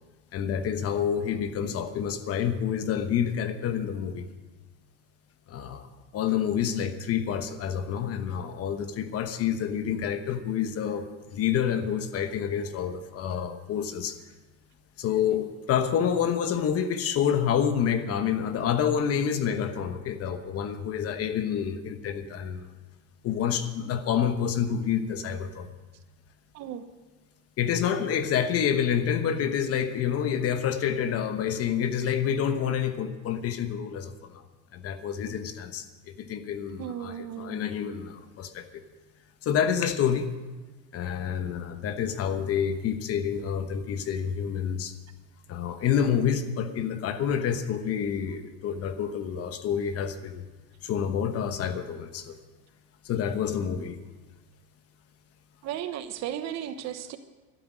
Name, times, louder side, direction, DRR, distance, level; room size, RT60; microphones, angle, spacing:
voice 1, 0.3-4.3 5.5-5.9 6.1-14.2 15.0-22.7 23.2-25.7 27.6-34.4 34.7-35.8 36.2-38.8 39.4-40.3 40.9-45.0 45.5-50.4 50.8-52.3 53.0-54.0, left 8 dB, 35° left, 10 dB, 1.1 m, -28 dB
voice 2, 26.5-26.8 36.8-37.6 55.6-57.2, right 10 dB, 45° right, 10 dB, 1.0 m, -35 dB
13.0 x 12.5 x 6.2 m, 1.2 s
supercardioid pair, 130°, 39 cm